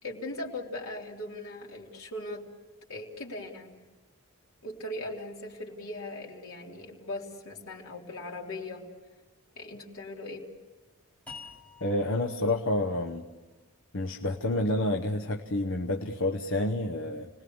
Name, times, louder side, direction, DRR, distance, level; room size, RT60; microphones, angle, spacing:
voice 1, 0.0-2.5 2.9-3.8 4.6-8.8 9.6-10.5, left 1 dB, 80° left, -1 dB, 3.5 m, -39 dB
sound 1, 11.3-14.5, left 4 dB, 5° left, 4.7 m, -50 dB
voice 2, 11.8-13.2 13.9-17.3, left 1 dB, 65° left, 2 dB, 1.0 m, -29 dB
29.5 x 20.0 x 7.1 m, 1.2 s
head